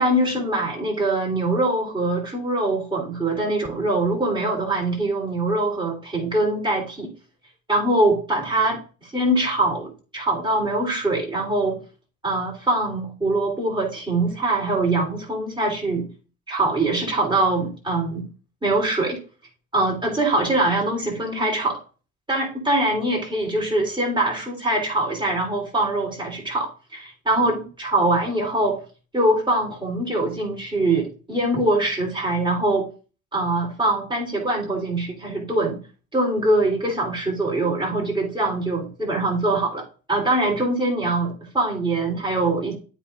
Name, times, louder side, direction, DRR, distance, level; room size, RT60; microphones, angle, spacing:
voice 1, 0.0-7.1 7.7-11.8 12.2-16.1 16.5-18.3 18.6-19.2 19.7-21.8 22.3-28.8 29.1-32.9 33.3-35.8 36.1-42.7, right 2 dB, 10° right, -2 dB, 3.4 m, -23 dB
12.5 x 5.6 x 2.5 m, 0.36 s
figure-of-eight pair, 50°, 43 cm